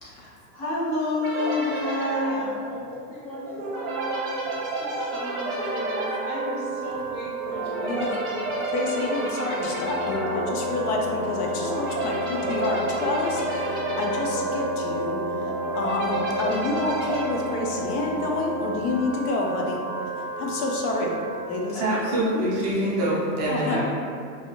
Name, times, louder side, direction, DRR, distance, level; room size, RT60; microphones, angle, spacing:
voice 1, 0.0-8.3 23.7-23.8, left 1 dB, 25° left, -9 dB, 0.5 m, -32 dB
sound 1, 1.2-18.4, right 1 dB, 50° right, 0.7 m, -32 dB
Wind instrument woodwind instrument, 3.7-21.9, right 4 dB, 85° right, 0.5 m, -34 dB
voice 2, 7.8-8.2 8.7-19.8 20.4-21.2 21.5-21.8 23.5-23.8, left 2 dB, 90° left, 0 dB, 0.6 m, -28 dB
Wind instrument woodwind instrument 2, 9.7-19.1, left 4 dB, 50° left, 0.9 m, -34 dB
voice 3, 21.7-23.8, right 1 dB, 30° right, -7 dB, 0.4 m, -25 dB
2.5 x 2.0 x 2.7 m, 2.3 s
supercardioid pair, 170°, 44 cm